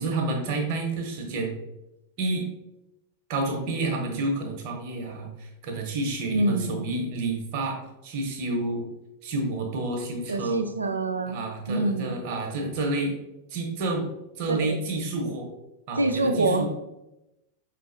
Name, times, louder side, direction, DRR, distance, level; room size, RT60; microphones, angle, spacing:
voice 1, 0.0-1.6 2.2-2.4 3.3-8.9 9.2-10.6 11.3-13.1 13.5-14.1 14.4-15.5 15.9-16.7, right 2 dB, 45° right, 2 dB, 1.0 m, -29 dB
voice 2, 6.3-6.9 10.3-11.4 11.7-12.2 14.5-14.8 16.0-16.7, right 2 dB, 80° right, 7 dB, 0.4 m, -26 dB
5.4 x 3.3 x 2.7 m, 0.91 s
figure-of-eight pair, 90°, 0 cm